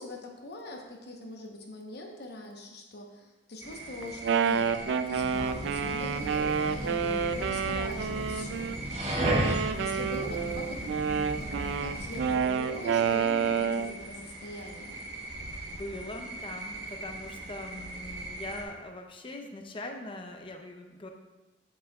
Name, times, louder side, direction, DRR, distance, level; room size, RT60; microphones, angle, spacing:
voice 1, 0.0-15.0, left 1 dB, 65° left, 1 dB, 1.0 m, -42 dB
sound 1, 3.6-18.6, right 2 dB, 70° right, 1.1 m, -41 dB
Wind instrument woodwind instrument, 4.0-8.8 9.2-14.0, right 6 dB, 90° right, 0.3 m, -29 dB
sound 2, 5.1-12.5, right 1 dB, 35° right, 1.4 m, -35 dB
voice 2, 15.7-21.1, left 2 dB, 30° left, 3 dB, 0.7 m, -41 dB
8.1 x 7.6 x 2.3 m, 1.1 s
head